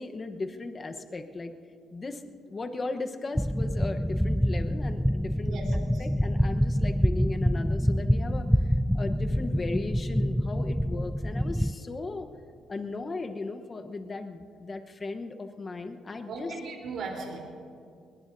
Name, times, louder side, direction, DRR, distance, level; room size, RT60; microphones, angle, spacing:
voice 1, 0.0-1.5 1.9-5.6 6.0-12.3 12.7-16.5, left 3 dB, 35° left, 6 dB, 1.1 m, -37 dB
sound 1, 3.4-11.7, equal, ahead, 0.3 m, -26 dB
voice 2, 5.4-6.1 16.3-17.4, right 3 dB, 70° right, -1 dB, 3.7 m, -37 dB
21.0 x 21.0 x 2.7 m, 2.4 s
cardioid pair, 90°, 0 cm